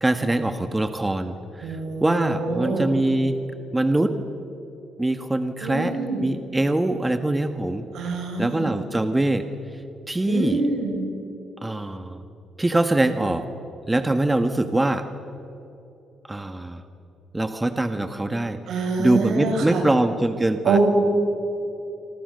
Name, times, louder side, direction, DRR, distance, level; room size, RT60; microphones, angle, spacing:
voice 1, 0.0-3.4 3.7-4.2 5.0-5.9 6.2-9.5 9.7-10.6 11.6-12.2 12.6-13.5 13.9-15.1 16.2-16.8 17.3-20.8, right 2 dB, 15° right, 8 dB, 1.4 m, -23 dB
voice 2, 1.6-2.9 5.6-6.3 7.9-8.7 10.3-11.0 18.7-19.8 20.6-20.8, right 4 dB, 75° right, 1 dB, 7.6 m, -25 dB
26.5 x 26.5 x 6.6 m, 2.9 s
cardioid pair, 90°, 0 cm